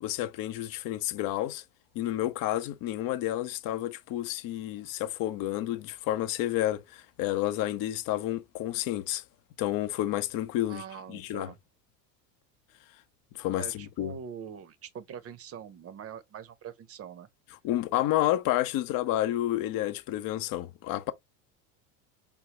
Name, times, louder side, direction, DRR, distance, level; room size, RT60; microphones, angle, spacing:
voice 1, 0.0-1.6 1.9-9.2 9.6-10.8 11.1-11.5 13.3-14.1 17.6-21.1, left 14 dB, 45° left, 0.7 m, -30 dB
voice 2, 10.7-11.6 13.6-17.3, right 8 dB, 30° right, 0.7 m, -43 dB
5.1 x 2.2 x 2.9 m
hypercardioid pair, 80°, 47 cm